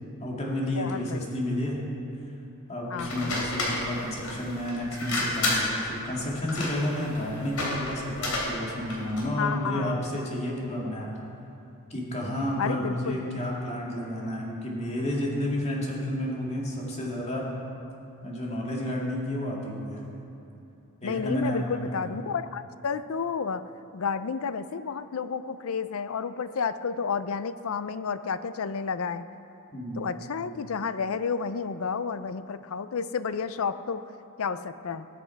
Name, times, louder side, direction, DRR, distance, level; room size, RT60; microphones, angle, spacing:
voice 1, 0.2-1.8 2.7-11.1 11.9-17.5 18.2-20.0 21.0-22.1 29.7-30.1, left 1 dB, 30° left, -3 dB, 2.3 m, -31 dB
voice 2, 0.8-1.3 2.9-3.5 9.4-10.3 12.6-13.3 21.0-23.6 23.9-29.2 29.9-34.0 34.4-35.1, left 5 dB, 65° left, 13 dB, 0.5 m, -31 dB
sound 1, 3.0-9.3, left 2 dB, 90° left, 3.3 m, -31 dB
20.0 x 7.7 x 4.7 m, 2.8 s
head